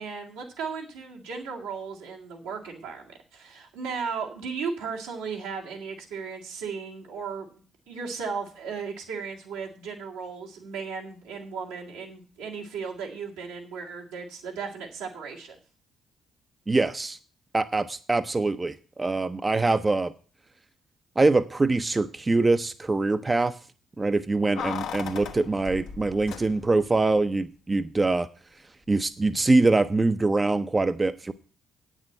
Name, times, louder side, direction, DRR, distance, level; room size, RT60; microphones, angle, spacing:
voice 1, 0.0-15.6, right 5 dB, 85° right, -1 dB, 2.0 m, -36 dB
voice 2, 16.7-17.2 17.5-20.1 21.2-23.5 24.0-28.3 28.9-31.3, right 3 dB, 25° right, 10 dB, 0.6 m, -24 dB
Keys jangling, 24.6-26.9 27.2-27.3, left 7 dB, 70° left, 1.1 m, -36 dB
8.8 x 6.3 x 7.7 m, 0.38 s
hypercardioid pair, 50°, 0 cm